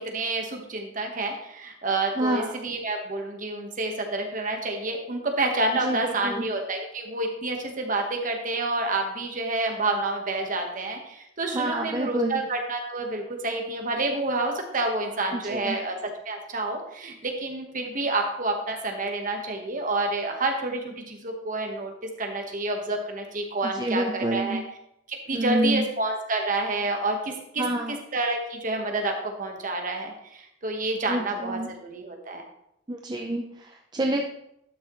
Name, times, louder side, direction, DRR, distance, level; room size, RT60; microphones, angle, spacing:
voice 1, 0.0-24.6 25.1-27.6 28.1-32.4, right 2 dB, 45° right, 3 dB, 1.3 m, -29 dB
voice 2, 2.2-2.6 5.8-6.5 11.5-12.4 15.3-15.8 23.8-24.6 25.3-25.9 27.6-28.0 31.1-31.7 32.9-34.2, right 1 dB, 25° right, 2 dB, 0.5 m, -28 dB
11.5 x 6.4 x 3.1 m, 0.79 s
head